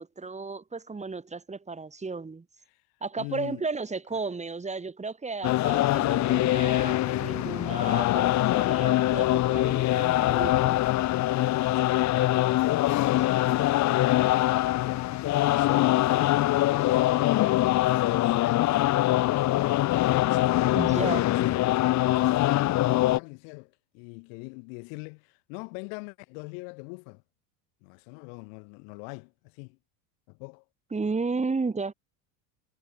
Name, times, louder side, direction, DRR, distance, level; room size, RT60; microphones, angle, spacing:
voice 1, 0.0-2.4 3.0-10.8 20.7-21.3 30.9-31.9, right 4 dB, 15° right, 4.9 m, -33 dB
voice 2, 3.2-3.7 11.2-15.0 15.4-18.8 19.8-27.2 27.8-29.8 30.3-30.6, left 40 dB or more, 70° left, 2.3 m, -41 dB
sound 1, 5.4-23.2, left 15 dB, 40° left, 0.9 m, -23 dB
supercardioid pair, 120°, 45 cm